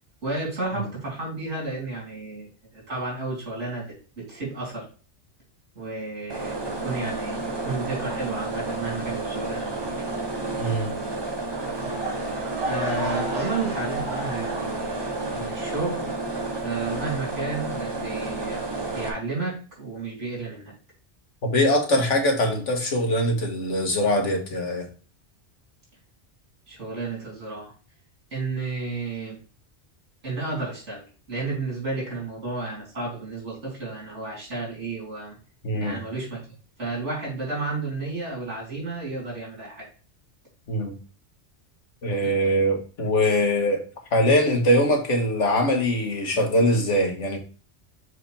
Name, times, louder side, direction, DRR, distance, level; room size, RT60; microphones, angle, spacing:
voice 1, 0.2-4.8 5.8-10.1 11.8-12.0 12.6-16.0 16.6-20.7 26.7-27.7 28.3-29.4 30.2-31.0 31.3-35.4 35.8-36.4 36.8-39.9 42.2-42.3, right 3 dB, 80° right, 3.8 m, -32 dB
sound 1, 6.3-19.1, right 2 dB, 25° right, 0.9 m, -31 dB
voice 2, 10.6-10.9 21.4-24.9 35.6-36.0 40.7-40.9 42.0-43.8 44.1-47.4, equal, 85° left, 1.9 m, -22 dB
sound 2, 11.5-16.5 16.8-17.2 17.7-17.8, right 1 dB, 60° right, 2.7 m, -35 dB
6.6 x 5.0 x 3.4 m
omnidirectional pair, 1.2 m